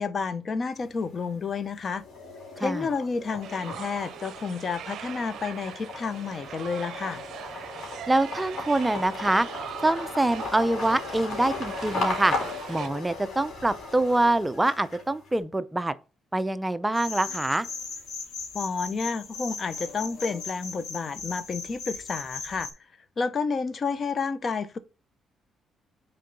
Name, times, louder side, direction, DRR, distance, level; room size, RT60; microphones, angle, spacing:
voice 1, 0.0-2.0 2.6-7.2 18.5-22.7 23.2-24.8, left 5 dB, 45° left, 0.7 m, -30 dB
sound 1, 0.7-1.4 1.8-15.3, left 3 dB, 65° left, 3.4 m, -37 dB
voice 2, 2.6-2.9 8.1-9.5 9.8-12.3 12.7-15.9 16.3-17.7, right 2 dB, 15° right, 0.4 m, -25 dB
sound 2, 3.4-12.9, right 10 dB, 70° right, 0.6 m, -41 dB
sound 3, 16.9-22.7, left 4 dB, 85° left, 2.5 m, -38 dB
6.5 x 4.5 x 3.9 m
cardioid pair, 90°, 0 cm